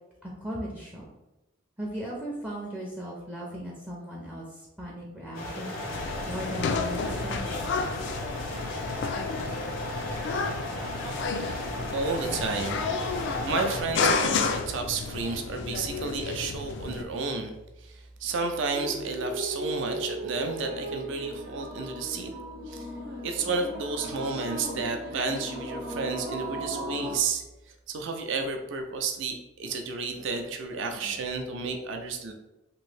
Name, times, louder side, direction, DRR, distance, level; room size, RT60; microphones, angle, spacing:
voice 1, 0.2-1.1 1.8-5.8 6.3-7.5, equal, 5° right, -4 dB, 0.4 m, -37 dB
sound 1, 5.3-13.8, left 1 dB, 85° left, 0.8 m, -35 dB
sound 2, 5.9-17.0, left 4 dB, 60° left, 0.3 m, -31 dB
voice 2, 11.9-12.8 13.5-17.5 17.8-22.3 22.7-22.9 23.2-27.4 27.9-32.3, right 4 dB, 65° right, 5 dB, 0.4 m, -31 dB
sound 3, 18.7-27.2, right 1 dB, 50° right, 0.9 m, -37 dB
3.0 x 2.6 x 3.2 m, 0.96 s
head